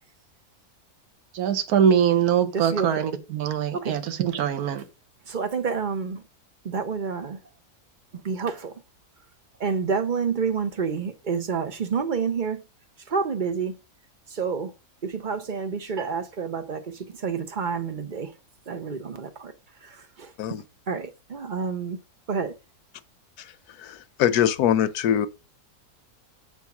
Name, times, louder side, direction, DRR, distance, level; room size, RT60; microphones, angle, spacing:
voice 1, 1.3-4.8, right 8 dB, 80° right, 1.4 m, -23 dB
voice 2, 2.5-3.0 3.7-4.0 5.3-6.2 6.6-7.4 8.1-8.8 9.6-12.6 13.1-13.7 14.3-14.7 15.0-18.3 18.7-19.5 19.8-20.3 20.9-22.0 22.3-22.5, right 5 dB, 40° right, 0.8 m, -29 dB
voice 3, 23.8-25.3, left 10 dB, 90° left, 1.2 m, -23 dB
6.8 x 4.6 x 5.9 m
omnidirectional pair, 1.6 m